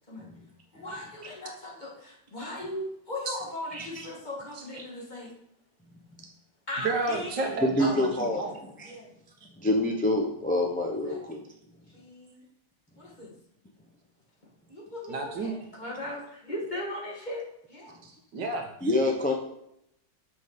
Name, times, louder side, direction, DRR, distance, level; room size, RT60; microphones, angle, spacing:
voice 1, 0.7-5.3 6.7-7.5 7.8-8.0 8.8-9.1 11.1-11.2 11.9-12.5 13.0-13.3 14.7-18.0, left 1 dB, 25° left, -4 dB, 2.2 m, -38 dB
voice 2, 3.7-4.1 7.6-8.5 8.8-8.9 9.6-11.5 18.8-19.3, left 1 dB, 10° left, 0 dB, 0.6 m, -26 dB
voice 3, 6.8-8.6 15.1-15.6 18.0-18.7, right 3 dB, 80° right, 3 dB, 2.0 m, -31 dB
6.3 x 5.7 x 6.7 m, 0.77 s
omnidirectional pair, 1.9 m